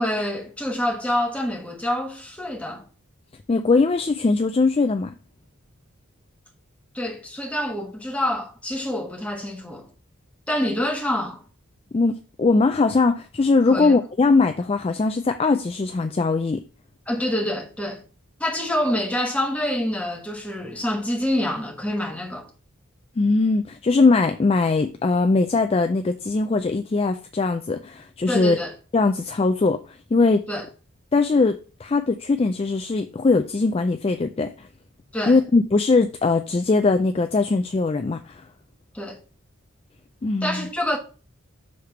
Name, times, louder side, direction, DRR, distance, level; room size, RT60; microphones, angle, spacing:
voice 1, 0.0-2.8 6.9-9.9 10.5-11.4 13.7-13.9 17.1-18.0 18.4-22.5 28.3-28.7 30.5-30.7 35.1-35.4 38.9-39.2 40.4-41.0, left 1 dB, 5° left, 1.2 m, -26 dB
voice 2, 3.5-5.1 11.9-16.6 23.2-28.6 28.9-30.4 31.1-34.7 35.3-38.4 40.2-40.7, left 3 dB, 25° left, 0.3 m, -21 dB
6.4 x 3.4 x 5.7 m
head